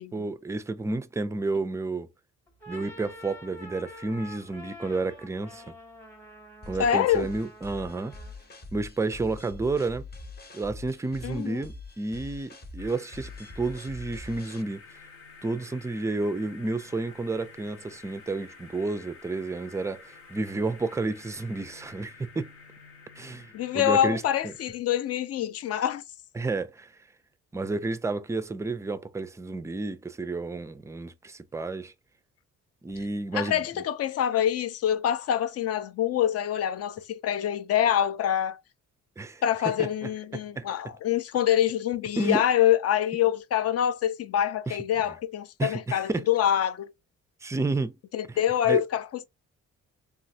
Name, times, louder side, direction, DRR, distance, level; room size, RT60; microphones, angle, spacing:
voice 1, 0.1-2.1 2.7-5.7 6.7-8.1 8.7-10.0 10.5-14.8 15.4-22.5 23.2-24.5 26.4-26.9 27.5-31.9 32.8-33.6 39.2-39.9 40.3-40.7 42.2-42.4 44.7-44.8 45.6-46.2 47.4-48.0 48.3-48.4 48.7-48.8, right 3 dB, 10° right, 0.3 m, -31 dB
sound 1, 2.5-8.5, left 1 dB, 5° left, 0.9 m, -47 dB
sound 2, 6.6-14.6, left 2 dB, 35° left, 0.8 m, -44 dB
voice 2, 6.8-7.3 11.2-11.6 23.5-26.0 33.3-38.6 39.4-46.9 48.1-49.2, left 10 dB, 55° left, 0.5 m, -25 dB
sound 3, 12.8-24.7, left 4 dB, 80° left, 0.8 m, -50 dB
3.1 x 2.4 x 2.7 m
cardioid pair, 90°, 30 cm